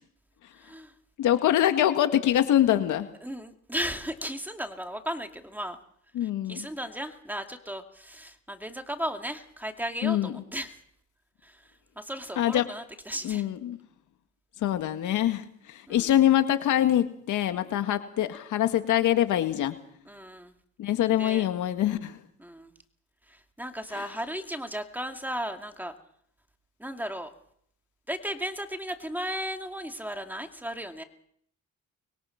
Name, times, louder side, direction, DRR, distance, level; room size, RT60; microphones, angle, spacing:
voice 1, 0.6-0.9 3.2-5.8 6.2-10.7 11.4-11.6 12.0-13.4 15.9-16.1 20.1-20.5 21.2-21.5 22.4-22.7 23.3-25.9 26.8-27.3 28.1-31.0, equal, 5° right, 5 dB, 2.4 m, -35 dB
voice 2, 1.2-3.1 6.1-6.7 10.0-10.3 12.4-12.6 13.2-13.8 14.6-19.7 20.8-22.2 23.9-24.1, left 12 dB, 80° left, 8 dB, 1.9 m, -24 dB
24.5 x 21.5 x 5.9 m, 0.66 s
cardioid pair, 90°, 30 cm